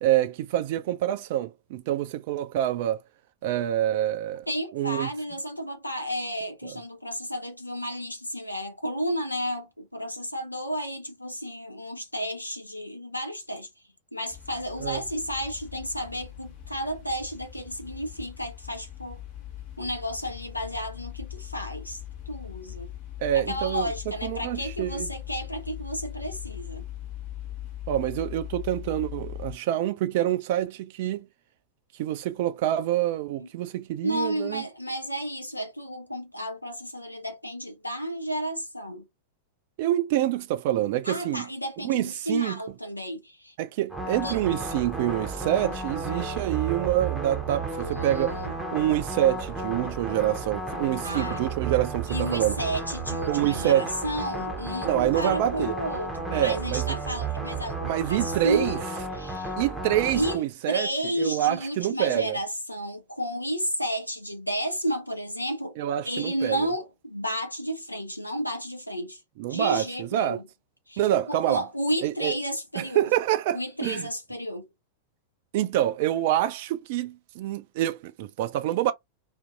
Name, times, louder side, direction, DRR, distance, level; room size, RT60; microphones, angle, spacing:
voice 1, 0.0-3.0 3.4-4.5 4.7-5.1 6.6-6.8 14.8-15.0 23.2-23.9 24.2-25.1 27.9-31.2 32.0-34.6 39.8-41.5 41.8-42.6 43.6-48.4 48.7-52.5 53.3-53.9 54.8-55.7 56.3-57.0 57.9-58.8 59.6-60.9 61.2-62.4 65.8-66.7 69.4-70.4 71.0-71.6 72.0-72.3 72.8-74.1 75.5-78.9, right 13 dB, 50° right, 0.3 m, -26 dB
voice 2, 4.5-13.7 14.1-19.2 19.8-22.0 22.3-22.9 23.3-26.8 33.4-33.5 34.0-39.1 41.1-43.5 44.2-44.4 47.8-48.5 51.0-51.4 52.1-58.8 59.1-59.5 60.1-60.4 60.7-65.8 66.0-69.2 69.5-70.4 70.9-71.0 71.3-73.1 73.5-74.7, equal, 85° left, 0.5 m, -32 dB
sound 1, 14.3-29.6, left 12 dB, 45° left, 0.9 m, -40 dB
sound 2, 43.9-60.4, right 3 dB, 5° right, 0.7 m, -33 dB
2.6 x 2.5 x 2.3 m
figure-of-eight pair, 90°, 0 cm